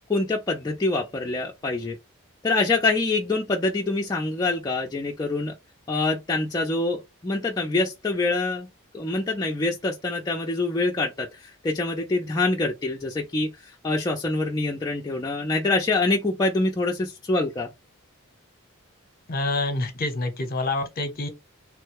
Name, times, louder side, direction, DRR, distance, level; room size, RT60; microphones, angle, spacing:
voice 1, 0.1-2.0 2.4-5.5 5.9-8.7 8.9-13.5 13.8-17.7, left 2 dB, 20° left, 0.4 m, -25 dB
voice 2, 19.3-21.3, left 2 dB, 40° left, 0.8 m, -27 dB
3.1 x 2.2 x 3.2 m
head